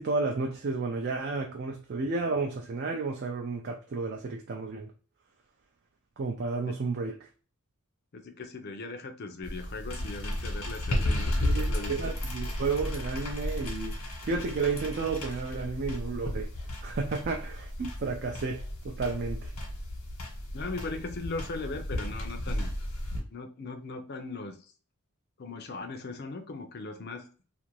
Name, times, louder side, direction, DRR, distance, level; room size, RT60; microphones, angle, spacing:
voice 1, 0.0-4.9 6.2-7.2 11.4-13.9 14.2-16.5 16.8-19.5, right 4 dB, 45° right, 0.4 m, -32 dB
voice 2, 8.1-12.1 20.5-22.7 23.3-24.6 25.4-27.2, left 3 dB, 45° left, 0.5 m, -39 dB
sound 1, 9.4-23.2, left 1 dB, 75° left, 1.1 m, -34 dB
2.5 x 2.5 x 2.9 m
head